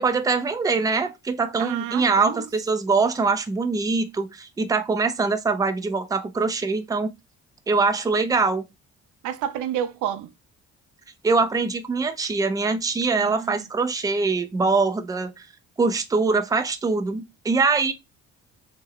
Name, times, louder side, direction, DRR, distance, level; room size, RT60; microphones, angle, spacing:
voice 1, 0.0-7.1 7.7-8.6 11.2-15.4 15.8-17.9, right 4 dB, 10° right, 0.4 m, -23 dB
voice 2, 1.6-2.4 9.2-10.3 13.1-13.6, right 10 dB, 85° right, 0.5 m, -30 dB
3.4 x 2.1 x 3.4 m
cardioid pair, 90°, 30 cm